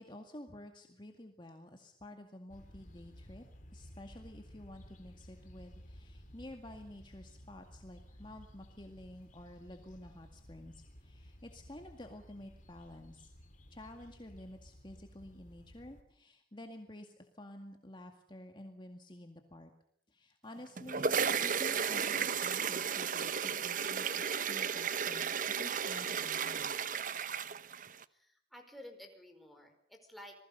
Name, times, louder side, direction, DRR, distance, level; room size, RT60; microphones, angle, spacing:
voice 1, 0.0-3.4 3.7-13.3 13.7-19.7 20.1-26.7, left 1 dB, 25° left, 4 dB, 2.0 m, -51 dB
sound 1, 2.5-16.0, equal, 45° left, 3.5 m, -55 dB
sound 2, 20.6-28.0, right 7 dB, 45° right, 0.9 m, -34 dB
voice 2, 28.1-30.4, left 1 dB, ahead, 3 dB, 5.0 m, -53 dB
27.5 x 20.0 x 6.9 m, 0.65 s
head